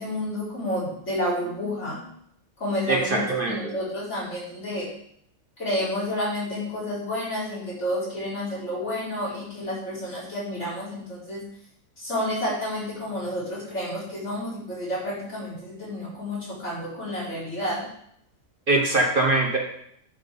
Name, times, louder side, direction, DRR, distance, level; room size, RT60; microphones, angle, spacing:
voice 1, 0.0-2.1 2.6-4.9 5.6-11.4 12.0-17.9, left 1 dB, 60° left, -8 dB, 5.4 m, -30 dB
voice 2, 2.9-3.7 18.7-19.6, right 2 dB, 40° right, 1 dB, 1.5 m, -22 dB
11.0 x 6.3 x 5.4 m, 0.71 s
omnidirectional pair, 1.4 m